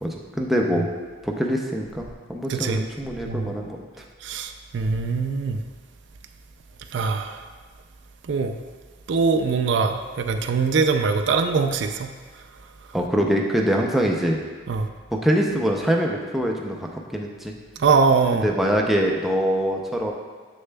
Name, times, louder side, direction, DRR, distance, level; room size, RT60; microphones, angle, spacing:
voice 1, 0.0-0.9 1.2-3.8 12.9-14.4 15.1-17.5 18.3-20.1, equal, ahead, -1 dB, 0.4 m, -24 dB
voice 2, 2.5-2.8 3.3-3.5 4.2-5.6 6.9-7.4 8.3-8.6 9.1-12.1 14.7-14.9 17.8-18.5, right 4 dB, 65° right, 6 dB, 0.4 m, -22 dB
6.9 x 6.5 x 2.2 m, 1.5 s
head